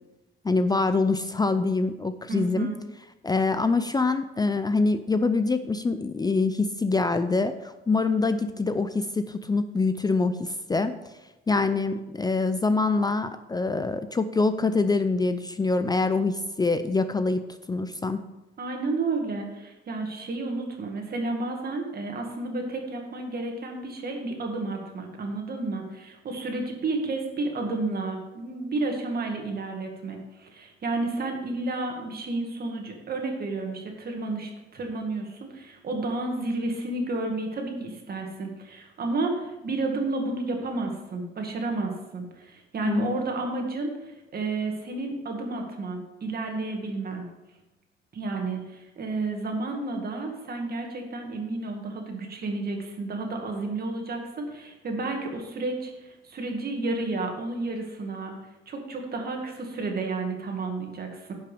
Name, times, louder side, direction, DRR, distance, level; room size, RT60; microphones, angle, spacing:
voice 1, 0.4-2.7 3.2-10.9 11.5-17.4 17.7-18.2 42.8-43.1, left 3 dB, 20° left, 10 dB, 0.5 m, -25 dB
voice 2, 2.3-2.8 18.6-47.3 48.1-58.3 58.7-61.3, right 3 dB, 50° right, 2 dB, 2.1 m, -31 dB
10.0 x 5.6 x 5.1 m, 1.0 s
cardioid pair, 90°, 20 cm